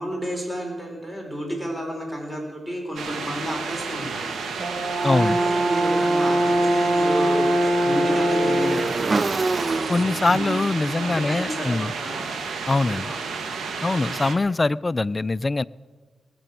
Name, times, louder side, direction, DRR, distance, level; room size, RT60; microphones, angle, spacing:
voice 1, 0.0-4.3 4.6-4.7 5.0-9.0 11.0-12.3 13.0-13.2, equal, 15° right, 0 dB, 4.1 m, -31 dB
sound 1, 3.0-14.4, right 5 dB, 85° right, 1.4 m, -32 dB
Brass instrument, 4.6-9.0, right 1 dB, 55° right, 1.7 m, -22 dB
voice 2, 5.0-5.4 9.9-11.9 12.7-13.1 13.8-15.6, left 3 dB, 30° left, 19 dB, 0.3 m, -23 dB
Motorcycle / Engine, 6.2-12.3, right 3 dB, 40° right, 0.5 m, -29 dB
19.0 x 6.9 x 8.6 m, 1.4 s
cardioid pair, 75°, 0 cm